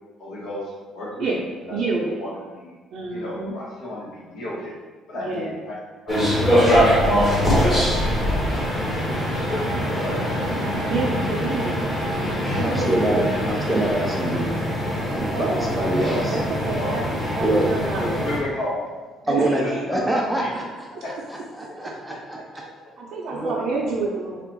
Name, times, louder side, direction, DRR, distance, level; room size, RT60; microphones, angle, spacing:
voice 1, 0.2-1.7 2.0-2.7 3.1-4.7 5.1-5.8 6.0-7.0 7.4-7.7 8.2-8.5 9.2-10.2 15.9-16.2 16.6-16.9 17.8-18.8 19.3-20.5 21.0-21.1 21.9-22.0, left 1 dB, 65° left, -6 dB, 1.5 m, -33 dB
voice 2, 1.7-2.2 2.9-3.5 5.1-5.6 7.6-7.8 10.9-11.8 12.5-13.4 15.3-17.0 17.3-18.3 19.3-19.8 20.9-21.0 21.8-21.9 23.0-24.4, right 3 dB, 60° right, -5 dB, 0.6 m, -28 dB
sound 1, 6.1-18.4, equal, 20° left, 1.3 m, -23 dB
voice 3, 12.6-14.5 15.1-16.4 17.4-17.7 19.3-20.9 21.3-22.6 23.3-23.5, right 1 dB, 5° right, -2 dB, 0.5 m, -25 dB
3.4 x 2.4 x 4.5 m, 1.3 s
cardioid pair, 140°, 0 cm